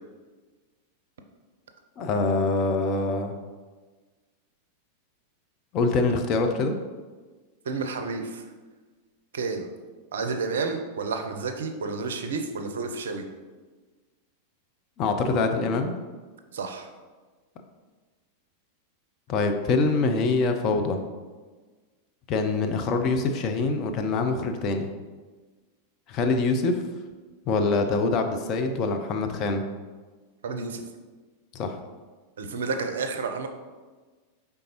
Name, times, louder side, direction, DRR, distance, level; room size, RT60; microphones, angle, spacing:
voice 1, 2.0-3.3 5.7-6.7 15.0-16.0 19.3-21.0 22.3-24.9 26.1-26.8 27.5-29.6 31.5-31.8, left 3 dB, 35° left, 5 dB, 0.4 m, -24 dB
voice 2, 7.7-8.4 9.3-9.7 10.1-13.2 16.5-16.9 30.4-30.8 32.4-33.5, right 4 dB, 65° right, 6 dB, 0.4 m, -30 dB
5.1 x 3.5 x 2.9 m, 1.4 s
figure-of-eight pair, 90°, 0 cm